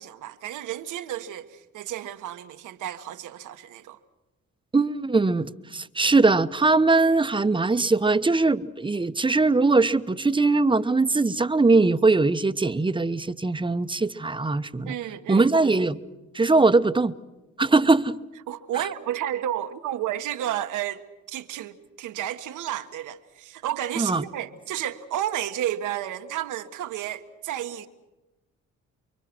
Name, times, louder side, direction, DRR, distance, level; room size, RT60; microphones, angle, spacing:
voice 1, 0.0-4.0 14.8-15.5 18.5-21.0 21.3-27.9, right 11 dB, 85° right, 1.5 m, -32 dB
voice 2, 4.7-14.9 15.3-16.0 16.3-17.1 17.6-18.2 24.0-24.2, right 3 dB, 15° right, 0.9 m, -21 dB
29.0 x 23.5 x 6.2 m
cardioid pair, 90°, 30 cm